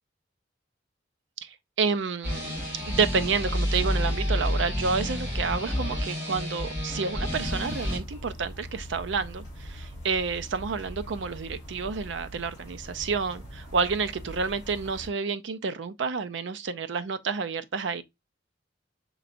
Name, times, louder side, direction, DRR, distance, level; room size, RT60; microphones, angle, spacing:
voice 1, 1.4-2.6 2.9-18.0, right 5 dB, 75° right, 0.5 m, -29 dB
sound 1, 2.2-8.0, equal, 10° right, 2.5 m, -29 dB
sound 2, 7.3-15.1, equal, 20° left, 3.4 m, -42 dB
6.7 x 3.1 x 2.5 m
head